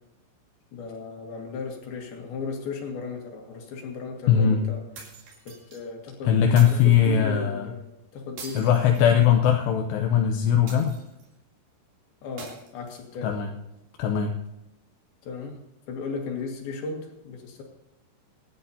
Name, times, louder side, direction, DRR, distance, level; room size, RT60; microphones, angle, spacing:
voice 1, 0.7-4.8 5.5-7.8 8.1-8.9 12.2-13.3 15.2-15.6 15.9-17.6, left 4 dB, 65° left, 1 dB, 3.9 m, -36 dB
voice 2, 4.3-4.6 6.3-7.7 8.6-11.0 13.2-13.5 14.0-14.3, left 8 dB, 80° left, 2 dB, 2.9 m, -20 dB
sound 1, 5.0-5.8 6.6-7.1 8.4-9.6 10.7-11.3 12.4-13.3, right 4 dB, 75° right, 5.2 m, -44 dB
26.0 x 10.0 x 2.8 m, 0.92 s
omnidirectional pair, 4.9 m